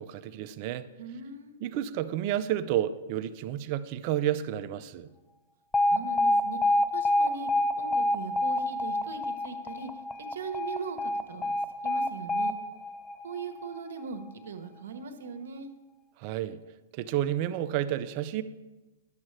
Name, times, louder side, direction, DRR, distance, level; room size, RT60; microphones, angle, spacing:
voice 1, 0.0-0.9 1.6-5.1 16.2-16.6 16.9-18.4, right 12 dB, 45° right, 12 dB, 0.5 m, -30 dB
voice 2, 1.0-1.6 5.9-6.6 6.9-7.5 7.8-9.9 10.2-11.5 11.8-12.5 13.2-15.7, right 5 dB, 75° right, 6 dB, 1.0 m, -40 dB
Alarm, 5.7-13.8, left 1 dB, 10° left, 0.5 m, -27 dB
10.5 x 7.3 x 3.2 m, 1.1 s
hypercardioid pair, 130°, 0 cm